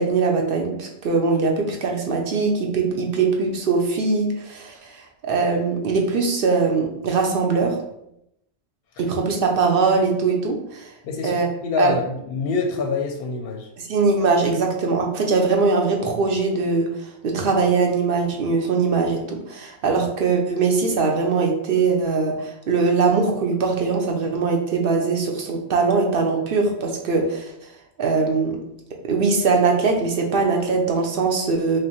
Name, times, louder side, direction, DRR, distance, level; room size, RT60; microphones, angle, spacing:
voice 1, 0.0-7.8 9.0-10.9 11.2-11.5 11.8-12.0 13.8-27.5 28.0-28.6 29.0-31.8, right 4 dB, 60° right, 1 dB, 0.7 m, -21 dB
voice 2, 11.0-13.7, left 4 dB, 65° left, 2 dB, 0.7 m, -26 dB
4.9 x 2.0 x 2.9 m, 0.79 s
omnidirectional pair, 1.2 m